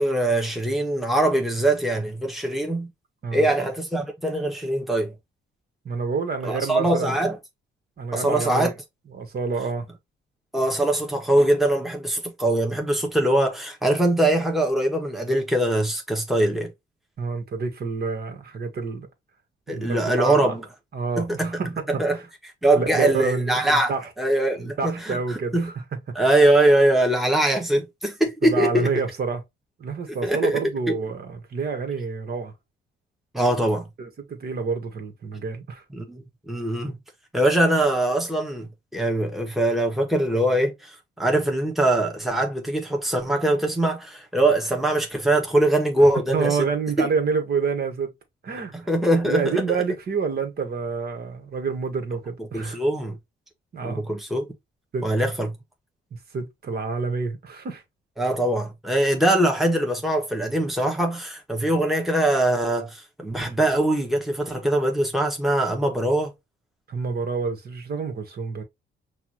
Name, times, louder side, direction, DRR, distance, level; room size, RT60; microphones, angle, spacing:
voice 1, 0.0-2.9 3.3-5.1 6.4-7.4 8.1-8.7 10.5-16.7 19.7-20.6 21.2-21.6 21.9-22.2 22.6-25.7 26.1-28.9 30.1-30.6 30.9-31.0 33.3-33.9 35.9-37.0 37.3-46.6 47.0-47.1 48.7-49.8 52.5-53.2 53.8-54.5 55.0-55.5 58.2-66.3, right 1 dB, ahead, 1.5 m, -22 dB
voice 2, 5.9-7.2 8.0-8.7 9.1-9.9 17.2-19.1 19.7-20.6 20.9-22.2 22.7-24.1 24.6-25.8 26.2-26.3 28.4-29.4 29.8-32.5 34.0-35.8 46.3-48.1 48.4-48.7 49.2-52.8 53.7-54.1 54.9-55.1 56.3-57.8 66.9-68.6, right 5 dB, 50° right, 1.7 m, -28 dB
5.9 x 2.8 x 3.0 m
cardioid pair, 90°, 20 cm